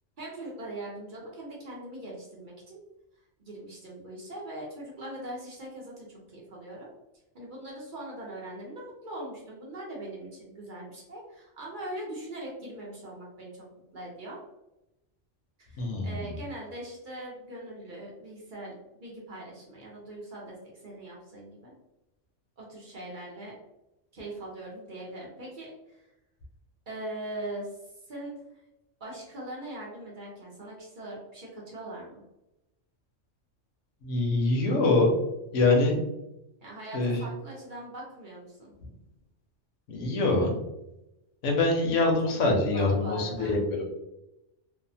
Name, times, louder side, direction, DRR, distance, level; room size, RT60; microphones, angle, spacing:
voice 1, 0.2-2.8 3.2-6.9 7.3-13.6 13.9-14.4 15.6-18.7 19.0-21.7 22.6-23.5 24.1-26.1 26.9-28.6 29.0-32.2 36.6-38.7 42.7-43.6, right 1 dB, 50° right, -4 dB, 0.7 m, -41 dB
voice 2, 15.8-16.3 34.0-35.1 35.5-36.0 36.9-37.2 39.9-40.6 41.4-43.9, left 2 dB, 85° left, 1 dB, 1.0 m, -24 dB
2.7 x 2.1 x 2.6 m, 0.92 s
omnidirectional pair, 1.3 m